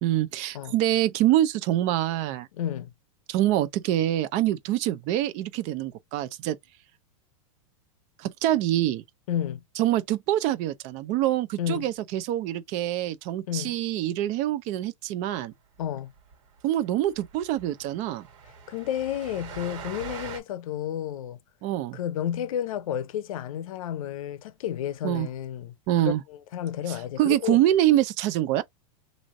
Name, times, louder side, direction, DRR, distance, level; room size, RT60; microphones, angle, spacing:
voice 1, 0.0-2.5 3.3-6.6 8.2-9.0 9.8-15.5 16.6-18.3 21.6-22.0 25.0-25.3 25.9-26.2 26.9-28.6, right 13 dB, 40° right, 0.6 m, -25 dB
voice 2, 2.5-2.9 9.3-9.6 11.6-11.9 13.5-13.8 15.8-16.1 18.7-21.4 21.9-25.7 26.0-27.6, left 10 dB, 75° left, 0.6 m, -31 dB
Train, 15.8-15.9 16.2-16.3 16.6-16.7 17.0-20.4, right 7 dB, 65° right, 1.9 m, -42 dB
3.1 x 2.6 x 3.9 m
supercardioid pair, 135°, 18 cm